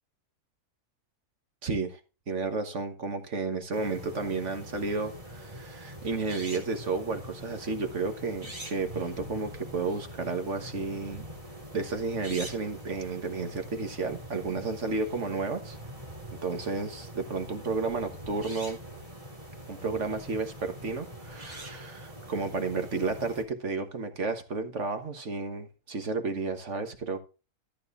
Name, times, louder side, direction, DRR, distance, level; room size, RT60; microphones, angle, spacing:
voice 1, 1.6-2.0 2.3-11.2 11.7-15.8 16.4-18.8 19.7-27.2, right 4 dB, 50° right, 1.6 m, -32 dB
sound 1, 3.7-23.4, equal, 20° right, 3.6 m, -44 dB
14.0 x 9.0 x 2.5 m
omnidirectional pair, 1.7 m